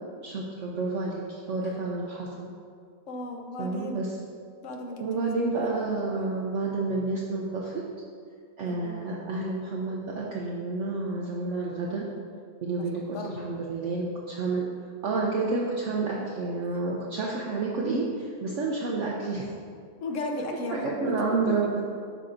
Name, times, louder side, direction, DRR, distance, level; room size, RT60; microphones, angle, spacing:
voice 1, 0.2-2.5 3.6-4.2 5.0-7.8 8.6-12.1 12.6-14.6 15.0-19.5 20.7-21.8, right 3 dB, 60° right, -3 dB, 0.9 m, -30 dB
voice 2, 3.1-4.0 4.6-5.3 5.8-5.9 6.1-6.4 8.6-9.0 12.7-12.9 13.1-13.6 20.0-21.2, left 2 dB, 60° left, 2 dB, 1.1 m, -36 dB
11.5 x 5.7 x 2.6 m, 2.2 s
omnidirectional pair, 1.6 m